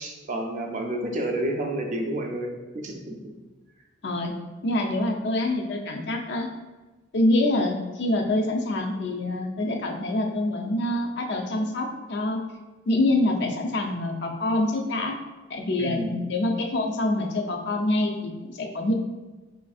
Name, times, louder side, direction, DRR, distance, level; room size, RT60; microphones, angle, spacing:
voice 1, 0.0-3.3 15.8-16.2, right 1 dB, 35° right, 2 dB, 0.4 m, -30 dB
voice 2, 4.0-4.3 4.6-6.5 7.1-12.4 12.9-15.2 15.5-18.9, left 1 dB, 55° left, 2 dB, 0.4 m, -25 dB
4.9 x 2.5 x 2.3 m, 1.2 s
head